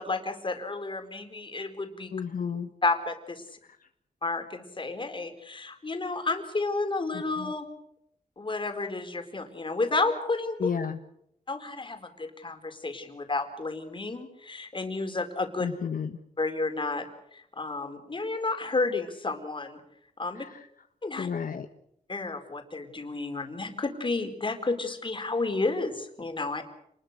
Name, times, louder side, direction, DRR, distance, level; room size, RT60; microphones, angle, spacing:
voice 1, 0.0-2.1 2.8-3.4 4.2-7.7 8.4-10.7 11.5-15.7 16.4-19.8 20.2-20.4 21.0-21.3 22.1-26.6, left 3 dB, 35° left, 6 dB, 4.2 m, -31 dB
voice 2, 2.1-2.7 10.6-11.0 15.6-16.1 21.2-21.7, left 7 dB, 70° left, 6 dB, 1.5 m, -31 dB
28.0 x 21.0 x 6.7 m, 0.74 s
wide cardioid pair, 100°, 15 cm